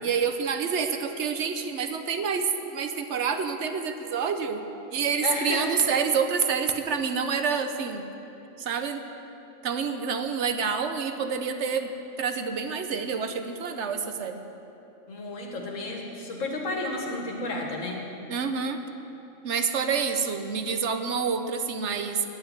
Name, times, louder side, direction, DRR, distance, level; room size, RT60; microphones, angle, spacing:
voice 1, 0.0-8.0 8.6-9.0 9.6-11.9 12.2-14.4 18.3-18.8 19.4-22.3, right 6 dB, 65° right, 7 dB, 1.0 m, -28 dB
voice 2, 5.2-5.7 15.1-18.0, left 2 dB, 80° left, 1 dB, 1.9 m, -32 dB
9.8 x 7.8 x 9.4 m, 2.9 s
omnidirectional pair, 1.3 m